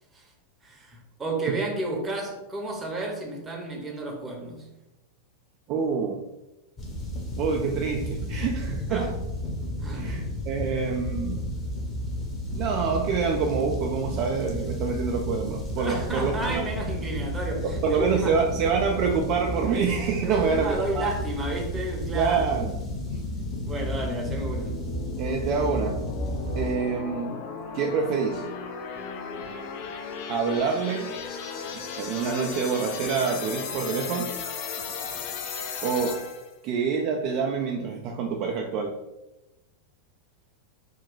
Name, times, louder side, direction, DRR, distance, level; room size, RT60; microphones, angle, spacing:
voice 1, 0.6-4.7 8.9-9.1 9.8-10.2 15.8-18.4 20.2-22.7 23.6-24.8, right 2 dB, 15° right, 0 dB, 0.7 m, -31 dB
voice 2, 5.7-6.2 7.4-9.1 9.9-11.4 12.5-16.6 17.6-21.1 22.1-22.7 25.2-26.0 26.5-27.4 27.7-28.5 30.3-31.1 31.7-34.3 35.8-36.2 36.6-38.9, right 5 dB, 40° right, 1 dB, 0.3 m, -26 dB
sound 1, 6.8-26.7, equal, 15° left, 0.8 m, -32 dB
sound 2, 22.5-36.5, left 5 dB, 45° left, 0.4 m, -36 dB
2.9 x 2.2 x 3.8 m, 0.97 s
figure-of-eight pair, 90°, 0 cm